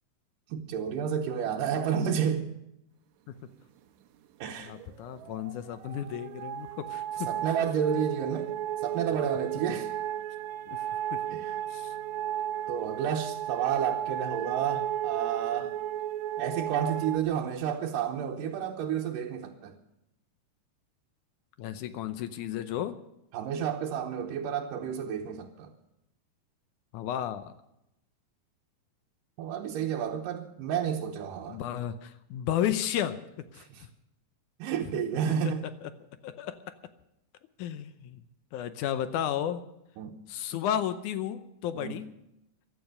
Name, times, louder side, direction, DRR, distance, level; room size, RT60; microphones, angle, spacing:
voice 1, 0.5-2.5 4.4-4.7 7.3-8.5 8.8-9.9 11.3-11.5 12.7-15.7 16.4-19.8 23.3-25.7 29.4-31.6 33.7-33.8 34.6-35.7 40.0-40.2 41.8-42.0, right 8 dB, 90° right, -1 dB, 2.6 m, -31 dB
voice 2, 4.6-7.3 10.7-10.8 11.1-11.2 11.7-11.9 21.6-23.0 26.9-27.5 31.5-33.2 33.5-33.7 35.8-35.9 36.2-36.6 37.6-38.2 38.5-39.6 40.3-42.1, left 10 dB, 75° left, 12 dB, 2.1 m, -33 dB
sound 1, 4.7-17.2, right 11 dB, 70° right, 2.0 m, -34 dB
15.5 x 12.0 x 6.6 m, 0.86 s
omnidirectional pair, 3.8 m